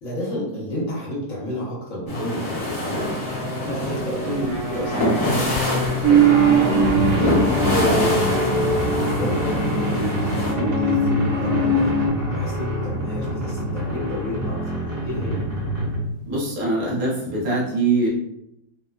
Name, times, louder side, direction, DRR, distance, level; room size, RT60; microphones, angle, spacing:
voice 1, 0.0-6.8 7.2-8.5 9.1-11.9 12.3-15.4, equal, 60° left, -5 dB, 1.1 m, -31 dB
Boat waves, 2.1-10.5, left 1 dB, 30° left, 0.7 m, -26 dB
sound 1, 2.8-16.2, equal, 40° right, 1.5 m, -27 dB
sound 2, 6.0-12.1, right 3 dB, 90° right, 1.3 m, -20 dB
voice 2, 16.3-18.1, right 3 dB, 70° right, -5 dB, 1.2 m, -22 dB
3.0 x 2.1 x 2.2 m, 0.81 s
omnidirectional pair, 1.7 m